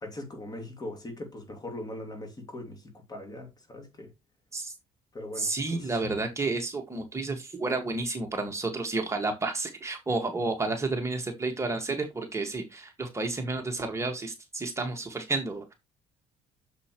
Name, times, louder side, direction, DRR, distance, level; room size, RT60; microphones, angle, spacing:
voice 1, 0.0-2.8 3.1-4.1 5.1-5.8, left 1 dB, 25° left, 2.7 m, -40 dB
voice 2, 5.4-15.7, right 3 dB, 20° right, 1.9 m, -31 dB
8.1 x 7.3 x 3.1 m
cardioid pair, 110°, 15 cm